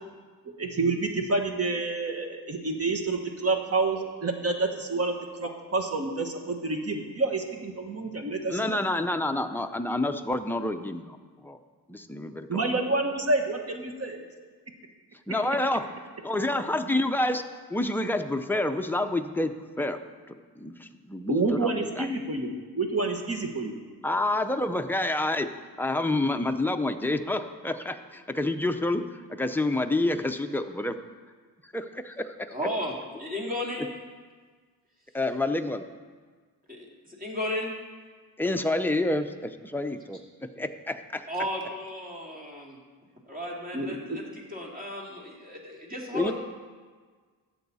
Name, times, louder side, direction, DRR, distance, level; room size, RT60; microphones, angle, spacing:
voice 1, 0.6-8.8 12.5-14.2 21.3-23.7 43.7-44.2, right 3 dB, 35° right, 4 dB, 1.4 m, -28 dB
voice 2, 8.5-11.2 11.4-11.6 11.9-12.6 15.3-15.9 16.2-17.4 17.7-20.0 20.3-21.7 22.0-22.1 24.0-25.5 25.8-30.9 31.7-32.5 35.1-35.8 38.4-41.2 46.1-46.3, left 2 dB, 5° left, 6 dB, 0.5 m, -28 dB
voice 3, 32.5-33.9 36.7-37.7 41.3-42.8 43.3-46.3, left 1 dB, 20° right, -2 dB, 2.5 m, -34 dB
15.0 x 7.8 x 4.1 m, 1.5 s
wide cardioid pair, 110°, 40 cm